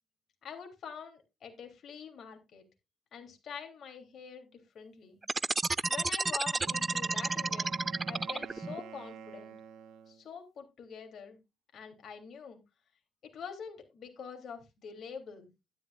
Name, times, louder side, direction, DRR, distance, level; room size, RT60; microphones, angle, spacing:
voice 1, 0.4-2.6 3.1-5.2 5.9-7.7 8.1-9.5 10.1-11.4 11.7-12.6 13.3-15.5, left 6 dB, 60° left, 4 dB, 3.3 m, -45 dB
sound 1, 5.2-8.8, right 3 dB, 25° right, 0.4 m, -31 dB
Wind instrument woodwind instrument, 6.4-10.2, right 8 dB, 90° right, 1.3 m, -50 dB
12.5 x 11.0 x 2.5 m, 0.24 s
cardioid pair, 90°, 0 cm